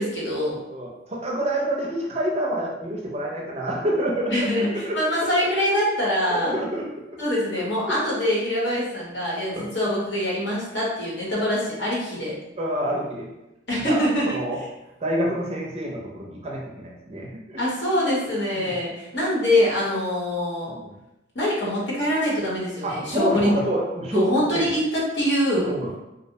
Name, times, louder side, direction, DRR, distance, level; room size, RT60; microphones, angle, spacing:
voice 1, 0.0-0.6 4.3-6.6 7.2-12.3 13.7-14.4 17.6-20.7 21.3-23.6 24.1-25.7, left 1 dB, 65° left, -6 dB, 0.9 m, -24 dB
voice 2, 0.7-5.0 6.3-7.2 9.5-9.7 12.6-13.3 13.8-14.0 14.3-14.6 15.0-17.6 18.5-18.7 20.7-20.9 22.8-24.7 25.6-25.9, right 1 dB, 35° right, -2 dB, 0.4 m, -27 dB
2.6 x 2.0 x 2.7 m, 0.93 s
head